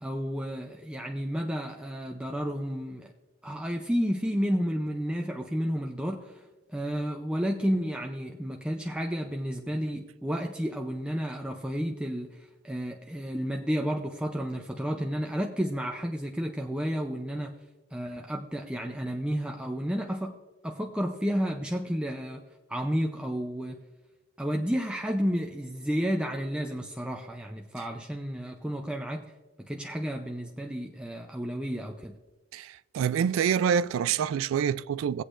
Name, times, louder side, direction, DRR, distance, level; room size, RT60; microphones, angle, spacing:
voice 1, 0.0-3.1 3.4-6.4 6.7-17.5 17.9-20.4 20.6-22.4 22.7-23.8 24.4-29.2 29.6-32.2, equal, 5° right, 0.5 m, -31 dB
voice 2, 32.5-35.2, right 7 dB, 85° right, 0.3 m, -26 dB
18.0 x 8.2 x 2.5 m
head